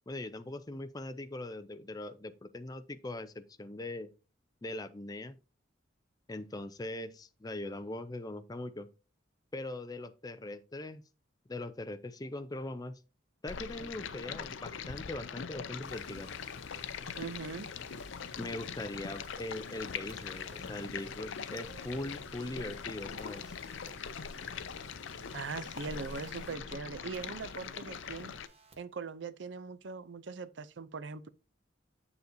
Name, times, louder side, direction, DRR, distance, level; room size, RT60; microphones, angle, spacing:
voice 1, 0.1-4.1 4.6-5.4 6.3-8.9 9.5-11.0 11.5-13.0 13.4-16.3 18.4-23.4, left 2 dB, 20° left, 0.5 m, -41 dB
Stream, 13.5-28.5, left 6 dB, 80° left, 0.6 m, -42 dB
sound 1, 15.8-26.6, left 2 dB, 60° left, 3.1 m, -55 dB
voice 2, 17.2-17.7 25.3-28.3 28.8-31.3, right 4 dB, 65° right, 0.5 m, -41 dB
sound 2, 20.1-20.7 21.5-22.2 23.2-23.9 25.8-26.3 27.1-28.8, right 2 dB, 30° right, 1.2 m, -58 dB
8.0 x 6.9 x 2.7 m
head